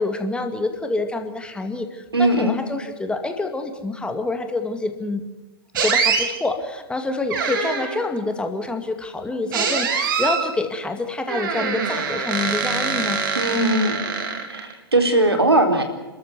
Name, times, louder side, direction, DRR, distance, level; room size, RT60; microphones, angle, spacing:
voice 1, 0.0-5.2 5.7-13.2, left 2 dB, 5° left, 6 dB, 2.2 m, -27 dB
voice 2, 2.1-2.5 13.3-14.0 14.5-15.8, right 1 dB, 80° right, 5 dB, 4.0 m, -19 dB
sound 1, 5.7-6.3 7.3-8.0 9.5-10.5 11.3-14.7, right 5 dB, 55° right, 3.7 m, -24 dB
29.5 x 13.5 x 8.0 m, 1.2 s
figure-of-eight pair, 105°, 13 cm